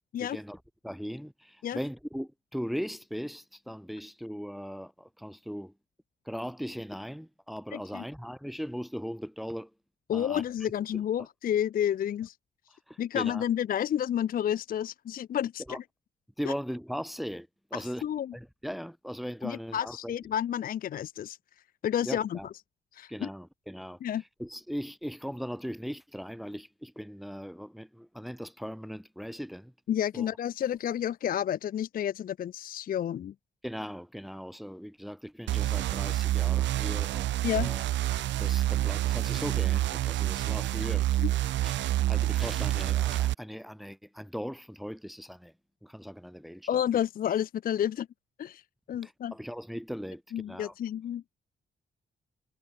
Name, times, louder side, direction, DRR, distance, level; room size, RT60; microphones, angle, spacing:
voice 1, 0.2-5.7 6.2-9.7 10.1-10.4 10.9-11.3 12.9-13.4 15.7-15.8 16.4-20.1 22.0-22.5 23.1-29.7 30.1-30.3 33.6-37.9 38.4-41.1 41.6-45.5 45.8-46.8 48.9-50.7, equal, ahead, 2.9 m, -39 dB
voice 2, 7.7-8.0 10.1-12.4 13.0-15.8 16.5-16.6 17.7-18.3 19.4-21.4 21.8-22.4 22.9-23.3 24.0-24.2 29.9-33.3 37.4-37.7 41.2-41.3 46.7-48.1 48.4-48.6 48.9-49.3 50.3-51.2, left 10 dB, 50° left, 0.4 m, -30 dB
sound 1, 35.5-43.3, right 14 dB, 85° right, 0.4 m, -28 dB
cardioid pair, 80°, 18 cm